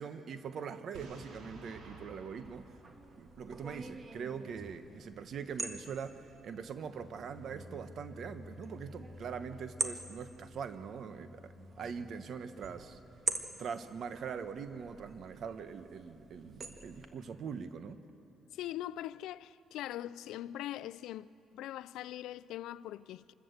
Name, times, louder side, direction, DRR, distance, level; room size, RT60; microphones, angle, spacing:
voice 1, 0.0-2.7 3.2-13.0 13.6-18.0, right 6 dB, 60° right, 1.1 m, -42 dB
Boom, 0.9-3.8, right 2 dB, 85° right, 3.1 m, -52 dB
sound 1, 2.4-17.1, right 3 dB, 35° right, 1.7 m, -45 dB
sound 2, 6.8-15.7, left 3 dB, 50° left, 0.8 m, -55 dB
voice 2, 18.5-23.3, left 13 dB, 90° left, 0.4 m, -42 dB
27.0 x 14.0 x 8.1 m
cardioid pair, 90°, 0 cm